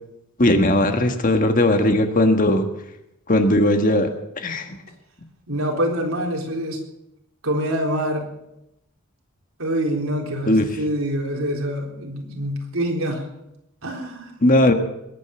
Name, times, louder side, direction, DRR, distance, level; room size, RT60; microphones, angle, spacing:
voice 1, 0.4-2.7 3.3-4.1 4.4-4.8 10.5-10.7 14.4-14.7, left 1 dB, 40° left, 6 dB, 1.5 m, -18 dB
voice 2, 5.5-6.8 7.4-8.3 9.6-13.3 13.8-14.3, equal, 75° right, 1 dB, 3.9 m, -25 dB
21.5 x 9.4 x 7.1 m, 0.85 s
head